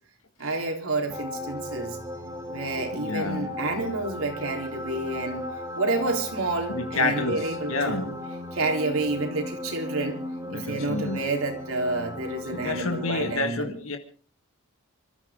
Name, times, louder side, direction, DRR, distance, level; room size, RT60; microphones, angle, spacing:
voice 1, 0.4-2.0 2.5-5.5 5.7-8.1 8.5-10.2 10.5-13.8, right 2 dB, 75° right, 2 dB, 3.7 m, -29 dB
sound 1, 1.1-13.4, left 1 dB, 15° right, 2.9 m, -36 dB
voice 2, 2.9-3.5 6.7-8.1 10.5-11.2 12.5-14.0, left 3 dB, 75° left, 5 dB, 1.7 m, -29 dB
26.5 x 14.0 x 3.7 m, 0.40 s
head